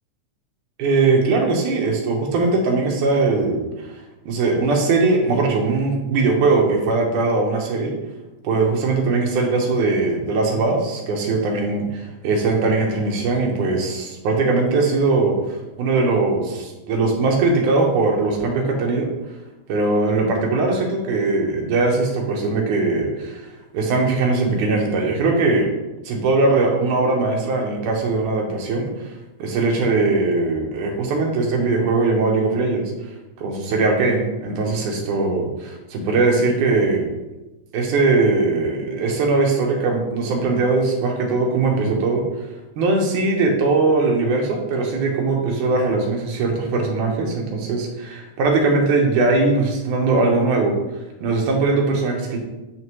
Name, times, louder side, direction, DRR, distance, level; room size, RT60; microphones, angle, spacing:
voice 1, 0.8-3.9 4.3-7.9 8.4-15.4 15.8-19.1 19.7-23.4 23.7-25.7 26.1-28.9 29.4-32.9 33.4-37.1 37.7-42.2 42.8-50.8 51.2-52.4, right 3 dB, 80° right, 0 dB, 2.5 m, -20 dB
9.3 x 3.3 x 3.1 m, 1.0 s
omnidirectional pair, 3.5 m